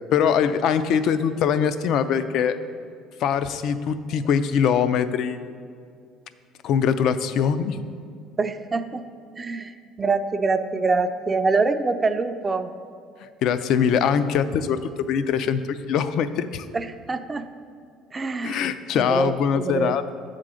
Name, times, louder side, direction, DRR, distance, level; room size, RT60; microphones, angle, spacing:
voice 1, 0.1-2.6 3.2-5.4 6.6-7.8 13.4-16.7 18.4-20.1, left 7 dB, 65° left, 12 dB, 0.3 m, -22 dB
voice 2, 8.4-9.0 9.4-9.7 10.0-12.7 16.7-17.4 18.1-18.7 18.9-20.0, right 3 dB, 25° right, 9 dB, 0.4 m, -25 dB
7.4 x 3.8 x 6.2 m, 2.2 s
supercardioid pair, 100°, 0 cm